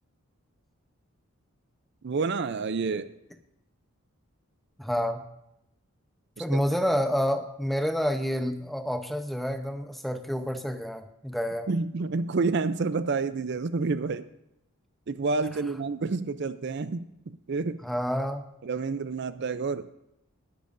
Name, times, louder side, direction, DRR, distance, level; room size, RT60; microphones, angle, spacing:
voice 1, 2.0-3.1 6.4-6.6 11.7-14.3 15.1-17.8 18.6-19.9, right 4 dB, 50° right, 13 dB, 0.4 m, -29 dB
voice 2, 4.8-5.2 6.4-11.7 17.8-18.5, equal, ahead, 7 dB, 0.7 m, -28 dB
20.5 x 10.5 x 2.6 m, 0.84 s
head